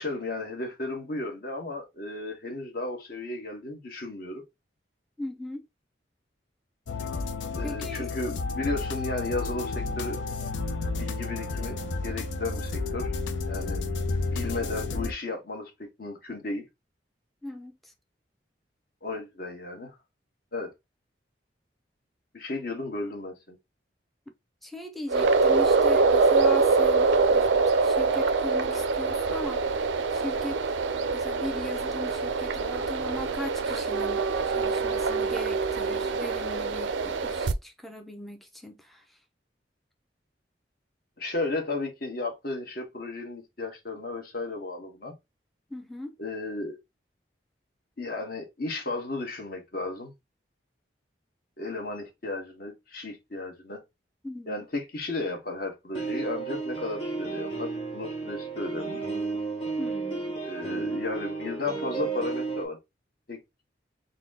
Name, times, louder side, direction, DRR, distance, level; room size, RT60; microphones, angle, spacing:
voice 1, 0.0-4.4 7.6-10.2 11.0-13.1 13.5-13.8 14.3-16.6 19.0-19.9 20.5-20.7 22.3-23.6 41.2-45.1 46.2-46.8 48.0-50.1 51.6-53.8 54.5-59.0 60.4-62.8 63.3-63.4, left 2 dB, 55° left, 1.2 m, -34 dB
voice 2, 5.2-5.7 7.6-8.0 17.4-17.9 24.6-27.5 27.8-30.6 31.1-39.2 45.7-46.2 54.2-54.6 59.8-60.4, left 1 dB, ahead, 0.5 m, -39 dB
sound 1, 6.9-15.1, left 3 dB, 85° left, 0.5 m, -31 dB
sound 2, 25.1-37.5, right 4 dB, 85° right, 0.4 m, -24 dB
sound 3, 55.9-62.6, right 4 dB, 30° left, 1.2 m, -33 dB
4.1 x 2.1 x 3.7 m
head